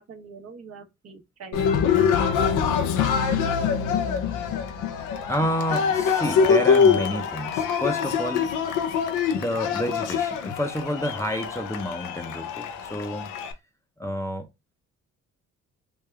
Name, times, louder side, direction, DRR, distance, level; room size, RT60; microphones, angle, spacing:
voice 1, 0.0-2.6, right 4 dB, 55° right, 1.0 m, -45 dB
Cheering, 1.5-13.5, left 6 dB, 90° left, 0.6 m, -24 dB
voice 2, 5.3-8.5 9.3-13.3 14.0-14.5, equal, 10° left, 0.6 m, -29 dB
3.5 x 2.3 x 3.2 m
cardioid pair, 90°, 30 cm